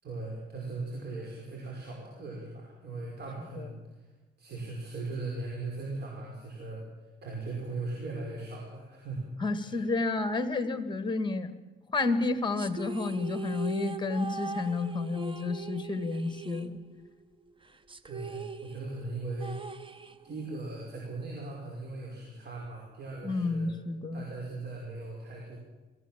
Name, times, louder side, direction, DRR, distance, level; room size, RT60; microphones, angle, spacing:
voice 1, 0.0-4.0 4.4-6.8 7.2-9.3 9.6-9.8 18.1-19.7 20.2-23.7 24.1-25.6, right 3 dB, 55° right, -1 dB, 5.4 m, -39 dB
voice 2, 9.4-11.5 11.9-16.8 23.2-24.3, left 3 dB, 25° left, 11 dB, 2.0 m, -30 dB
sound 1, 12.6-17.2 17.5-17.6 17.9-20.5, right 4 dB, 25° right, 1.2 m, -40 dB
23.0 x 15.5 x 7.5 m, 1.2 s
cardioid pair, 90°, 20 cm